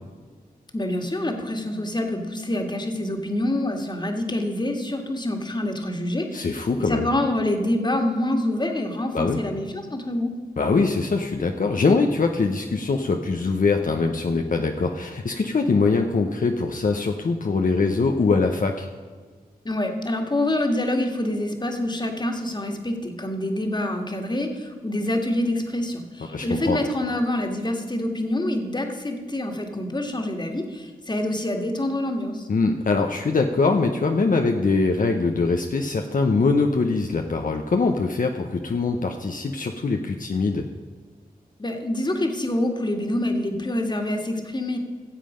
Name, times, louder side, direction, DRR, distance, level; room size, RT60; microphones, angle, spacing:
voice 1, 0.7-6.5 6.8-10.4 19.6-32.5 41.6-44.8, left 1 dB, 30° left, 3 dB, 1.9 m, -26 dB
voice 2, 6.3-7.1 9.1-9.4 10.6-18.9 26.3-26.8 32.5-40.6, left 4 dB, 60° left, 3 dB, 0.9 m, -22 dB
16.0 x 7.5 x 5.1 m, 1.5 s
cardioid pair, 55°, 16 cm